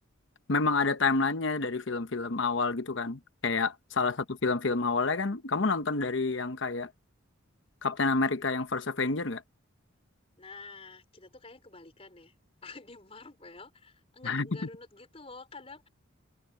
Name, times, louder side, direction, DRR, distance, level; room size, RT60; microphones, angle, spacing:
voice 1, 0.5-6.9 7.8-9.4 14.2-14.5, left 4 dB, 60° left, 1.0 m, -28 dB
voice 2, 10.4-15.9, left 3 dB, 30° left, 4.5 m, -48 dB
head